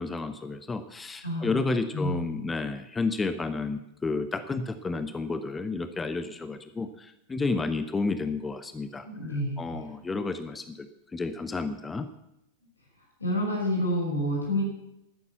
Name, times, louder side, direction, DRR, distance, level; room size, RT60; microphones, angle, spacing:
voice 1, 0.0-9.1 9.6-10.9 11.1-12.1, left 3 dB, 15° left, 11 dB, 0.7 m, -31 dB
voice 2, 1.2-1.6 1.9-2.1 9.0-9.6 13.2-14.6, equal, 80° left, -2 dB, 5.7 m, -28 dB
12.0 x 9.8 x 7.2 m, 0.84 s
figure-of-eight pair, 90°, 0 cm